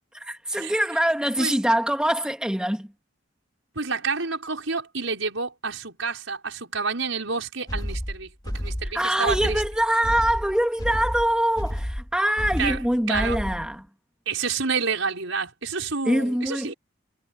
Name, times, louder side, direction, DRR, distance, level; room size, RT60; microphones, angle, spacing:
voice 1, 0.2-2.9 8.8-13.9 16.1-16.7, right 1 dB, 5° right, 1.7 m, -24 dB
voice 2, 3.8-8.3 8.5-9.6 12.6-12.8 13.1-13.4 14.3-16.7, right 4 dB, 85° right, 5.5 m, -29 dB
sound 1, 7.7-13.7, equal, 20° left, 2.7 m, -31 dB
head